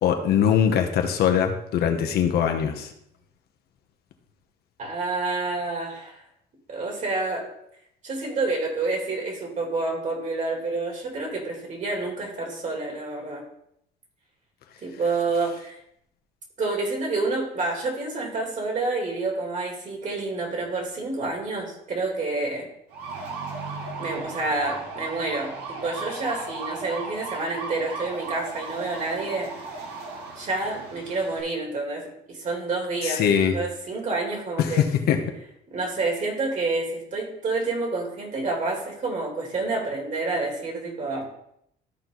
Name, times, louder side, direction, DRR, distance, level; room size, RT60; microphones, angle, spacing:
voice 1, 0.0-2.9 33.0-33.5 34.6-35.2, left 8 dB, 70° left, 5 dB, 1.2 m, -22 dB
voice 2, 4.8-6.2 6.7-7.5 8.0-13.4 14.8-15.8 16.6-22.7 24.0-29.5 30.4-33.2 33.5-34.8 35.7-41.3, right 3 dB, 45° right, 1 dB, 3.1 m, -28 dB
sound 1, 22.9-31.4, right 3 dB, 85° right, 2.3 m, -36 dB
13.0 x 4.6 x 4.0 m, 0.74 s
cardioid pair, 110°, 17 cm